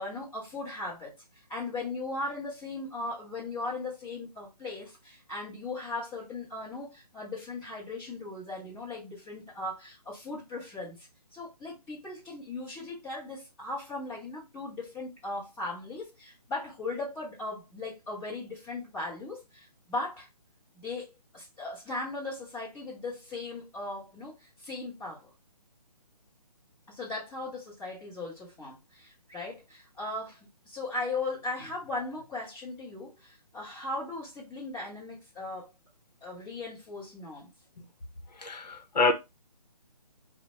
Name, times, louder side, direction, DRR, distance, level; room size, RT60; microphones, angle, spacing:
voice 1, 0.0-11.1 11.3-20.3 20.7-25.3 26.9-35.7 36.2-37.5, left 2 dB, 10° left, 0.7 m, -38 dB
voice 2, 38.4-39.1, left 3 dB, 80° left, 0.8 m, -26 dB
3.4 x 2.1 x 2.8 m
hypercardioid pair, 160°, 21 cm